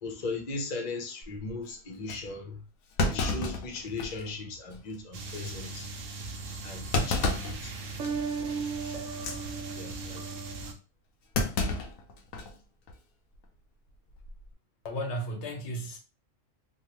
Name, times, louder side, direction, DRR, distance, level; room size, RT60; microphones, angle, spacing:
voice 1, 0.0-2.6 3.1-5.9 6.6-7.7 8.2-9.0 9.8-10.4, left 3 dB, 45° left, 0.7 m, -38 dB
Thump thud, 1.2-1.5 2.1-2.2 3.0-4.3 4.7-4.8 5.3-5.5 6.9-7.6 8.0-8.3 9.1-9.4 11.3-12.6 12.9-13.0 14.1-14.4, left 2 dB, 90° left, 1.0 m, -30 dB
sound 1, 5.1-10.7, right 4 dB, 80° right, 1.0 m, -36 dB
voice 2, 14.8-16.0, equal, 65° left, 0.9 m, -34 dB
3.0 x 2.3 x 2.9 m
omnidirectional pair, 1.3 m